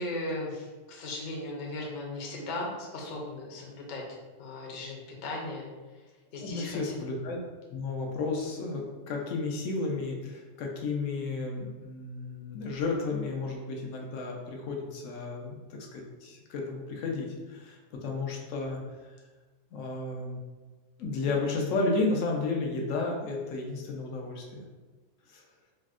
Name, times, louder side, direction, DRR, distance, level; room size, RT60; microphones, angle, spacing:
voice 1, 0.0-2.7 2.9-4.0 4.4-5.7 6.3-6.9, left 2 dB, 50° left, -2 dB, 0.6 m, -37 dB
voice 2, 6.4-7.4 7.7-18.8 19.7-20.4 21.0-24.6 25.3-25.4, left 3 dB, 85° left, 0 dB, 1.0 m, -32 dB
4.2 x 2.0 x 2.4 m, 1.3 s
omnidirectional pair, 1.3 m